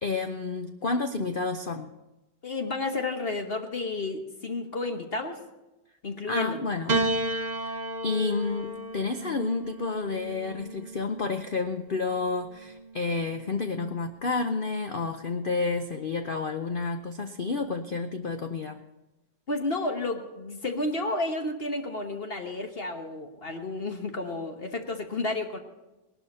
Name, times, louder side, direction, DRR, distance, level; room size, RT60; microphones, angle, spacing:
voice 1, 0.0-1.9 6.3-7.0 7.5-7.7 8.0-18.8, left 4 dB, 85° left, 7 dB, 0.4 m, -30 dB
voice 2, 2.4-5.4 6.0-6.7 19.5-25.6, left 2 dB, 40° left, 5 dB, 1.1 m, -31 dB
Piano, 6.9-11.4 12.4-13.2, right 1 dB, 50° right, 0.4 m, -32 dB
19.0 x 12.0 x 4.2 m, 1.0 s
omnidirectional pair, 1.9 m